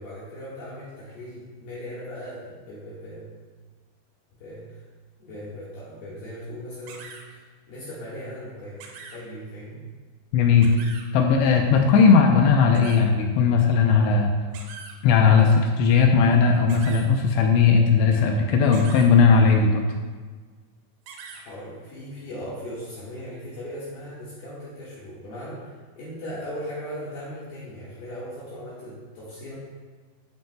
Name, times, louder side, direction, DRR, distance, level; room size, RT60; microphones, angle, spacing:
voice 1, 0.0-3.3 4.4-4.8 5.2-8.8 9.1-9.8 21.3-29.5, equal, 65° left, -9 dB, 3.2 m, -38 dB
sound 1, 6.9-7.2 8.8-9.2 10.6-11.1 12.7-13.0 14.5-15.0 16.7-17.1 18.7-19.1 21.1-21.4, right 5 dB, 90° right, 3.4 m, -42 dB
voice 2, 10.3-10.7 11.1-14.3 15.0-19.8, left 5 dB, 85° left, 2 dB, 2.5 m, -18 dB
11.5 x 8.5 x 2.2 m, 1.4 s
omnidirectional pair, 5.5 m